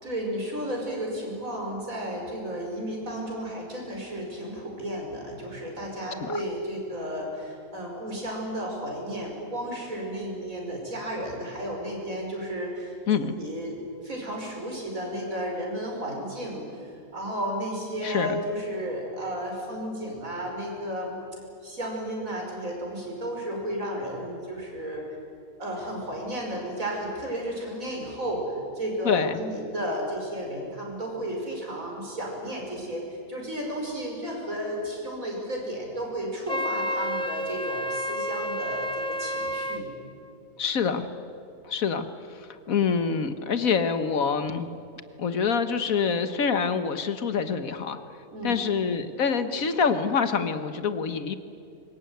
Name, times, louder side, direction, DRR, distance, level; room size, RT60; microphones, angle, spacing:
voice 1, 0.0-13.0 13.4-16.6 17.1-21.2 21.6-25.1 25.6-39.9 48.3-48.6, equal, 70° right, 0 dB, 6.1 m, -33 dB
voice 2, 18.0-18.4 29.0-29.4 40.6-41.1 41.6-42.1 42.3-44.7 45.2-48.0 48.4-51.3, left 6 dB, 70° left, 10 dB, 1.6 m, -26 dB
Wind instrument woodwind instrument, 36.5-39.8, equal, 5° left, 1.0 m, -30 dB
25.0 x 22.0 x 9.4 m, 2.5 s
omnidirectional pair, 1.5 m